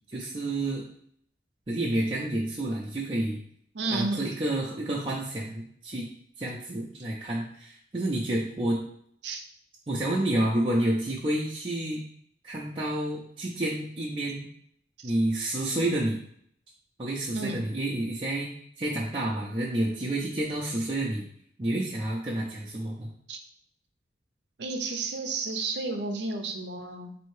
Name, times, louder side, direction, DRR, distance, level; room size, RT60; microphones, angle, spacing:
voice 1, 0.1-0.8 1.7-3.4 3.9-6.1 6.4-8.8 9.9-12.0 12.4-14.5 15.0-16.2 17.0-18.5 18.8-21.2 21.6-23.1, right 1 dB, 30° right, -5 dB, 0.5 m, -29 dB
voice 2, 3.7-4.2 9.2-9.4 15.0-15.1 17.3-17.6 23.3-23.4 24.6-27.2, right 3 dB, 75° right, 5 dB, 0.6 m, -32 dB
4.2 x 2.7 x 3.1 m, 0.66 s
head